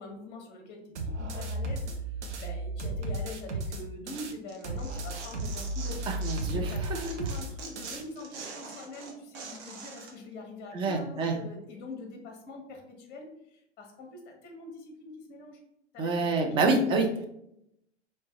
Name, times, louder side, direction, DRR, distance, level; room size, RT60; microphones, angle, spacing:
voice 1, 0.0-6.0 6.5-15.6 15.9-16.6, left 2 dB, 30° left, 2 dB, 1.2 m, -44 dB
sound 1, 1.0-4.3 4.6-8.0, right 2 dB, 75° right, 0.8 m, -34 dB
Tearing, 4.5-6.7 7.0-10.1, right 4 dB, 35° right, 0.9 m, -44 dB
voice 2, 6.1-7.0 10.7-11.3 16.0-17.1, right 3 dB, 15° right, 3 dB, 0.5 m, -27 dB
4.5 x 3.2 x 2.9 m, 0.78 s
figure-of-eight pair, 110°, 35 cm